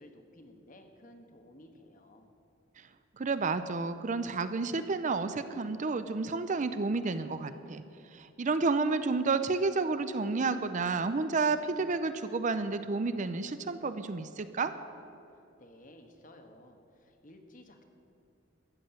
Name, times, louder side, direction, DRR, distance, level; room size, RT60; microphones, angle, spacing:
voice 1, 0.0-2.3 15.6-17.8, left 1 dB, 40° left, 5 dB, 1.3 m, -55 dB
voice 2, 3.2-14.7, right 4 dB, 40° right, 11 dB, 0.5 m, -31 dB
13.5 x 7.7 x 8.8 m, 2.6 s
head